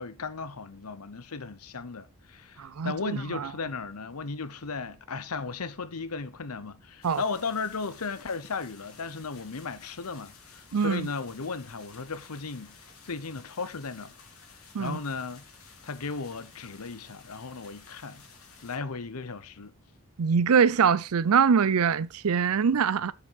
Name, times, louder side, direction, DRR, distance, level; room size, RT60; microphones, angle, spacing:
voice 1, 0.0-12.8 13.0-14.1 14.8-15.4 15.8-18.2 18.6-19.7, left 4 dB, 90° left, 0.9 m, -36 dB
voice 2, 2.6-3.0 3.3-3.5 7.0-7.2 10.7-11.1 14.7-15.0 20.2-23.1, right 6 dB, 80° right, 0.5 m, -23 dB
sound 1, 7.0-18.8, left 5 dB, 75° left, 2.6 m, -53 dB
7.3 x 6.9 x 4.2 m
head